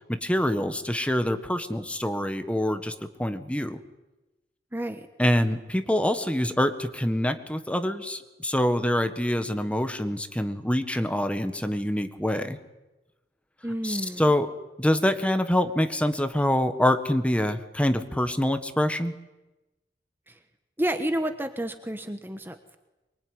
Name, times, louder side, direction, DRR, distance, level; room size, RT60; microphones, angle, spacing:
voice 1, 0.1-2.9 3.2-3.8 5.2-12.6 13.8-14.5 14.8-19.1, left 1 dB, 5° left, 9 dB, 1.6 m, -25 dB
voice 2, 4.7-5.1 13.6-14.2 20.3-20.4 20.8-22.8, right 1 dB, 15° right, 8 dB, 1.3 m, -30 dB
24.5 x 23.5 x 9.8 m, 1.0 s
head